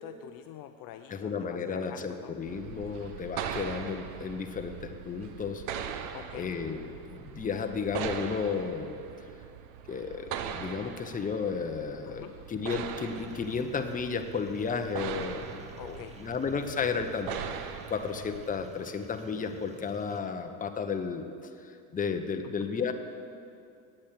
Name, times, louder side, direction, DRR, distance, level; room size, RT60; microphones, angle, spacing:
voice 1, 0.0-2.4 6.1-6.5 12.1-12.4 15.8-16.2 22.4-22.5, left 12 dB, 45° left, 8 dB, 0.6 m, -46 dB
voice 2, 1.1-5.6 6.3-6.8 7.1-9.0 9.9-21.3 21.6-22.9, left 5 dB, 15° left, 6 dB, 0.8 m, -33 dB
sound 1, 2.5-18.7, right 8 dB, 70° right, 1.0 m, -40 dB
sound 2, 13.0-20.2, right 2 dB, 15° right, 1.2 m, -52 dB
8.7 x 8.6 x 7.6 m, 2.5 s
hypercardioid pair, 90°, 48 cm